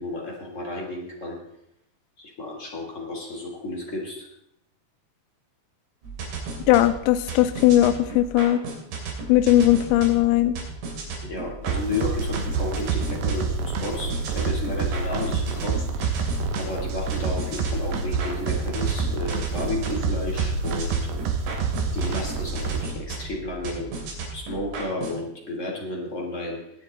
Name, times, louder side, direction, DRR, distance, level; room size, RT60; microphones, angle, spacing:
voice 1, 0.0-1.4 2.2-4.3 11.2-16.2 16.5-21.0 21.9-23.9 24.3-26.6, left 2 dB, 30° left, -2 dB, 1.5 m, -32 dB
sound 1, 6.0-25.2, right 4 dB, 85° right, 5.5 m, -35 dB
voice 2, 6.7-8.6 9.3-10.6, left 14 dB, 80° left, 11 dB, 2.9 m, -18 dB
sound 2, 11.7-22.8, right 4 dB, 65° right, 2.5 m, -27 dB
20.5 x 8.2 x 4.1 m, 0.80 s
omnidirectional pair, 5.4 m